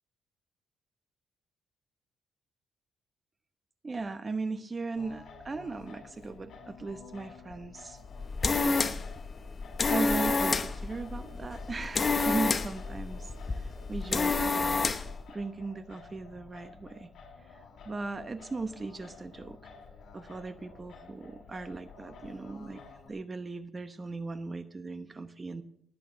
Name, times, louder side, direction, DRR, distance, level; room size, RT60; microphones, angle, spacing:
voice 1, 3.8-8.0 9.9-14.9 15.3-17.1 17.5-19.6 20.1-22.8 23.1-25.6, right 3 dB, 30° right, 11 dB, 0.9 m, -38 dB
Singing, 5.0-23.1, left 4 dB, 65° left, 3.3 m, -51 dB
sound 1, 8.0-15.2, left 4 dB, 35° left, 1.0 m, -29 dB
18.5 x 8.4 x 6.6 m, 0.69 s
cardioid pair, 85°, 0 cm